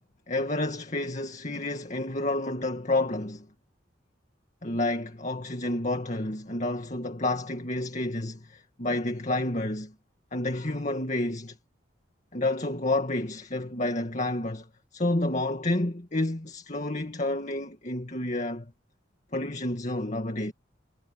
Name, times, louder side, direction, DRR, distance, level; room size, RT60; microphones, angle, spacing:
voice 1, 0.3-3.5 4.6-9.9 10.3-11.6 12.3-18.7 19.3-20.5, left 2 dB, 40° left, 2.2 m, -30 dB
head